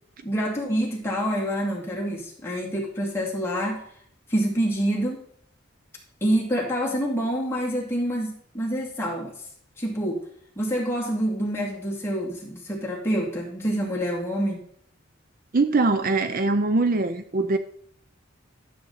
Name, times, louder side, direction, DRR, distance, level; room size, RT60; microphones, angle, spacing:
voice 1, 0.2-3.9 4.3-5.2 6.2-9.3 9.8-10.3 10.6-14.6, equal, 10° left, -3 dB, 2.4 m, -27 dB
voice 2, 15.5-17.6, right 3 dB, 40° right, 9 dB, 0.5 m, -22 dB
12.5 x 7.3 x 4.0 m, 0.63 s
head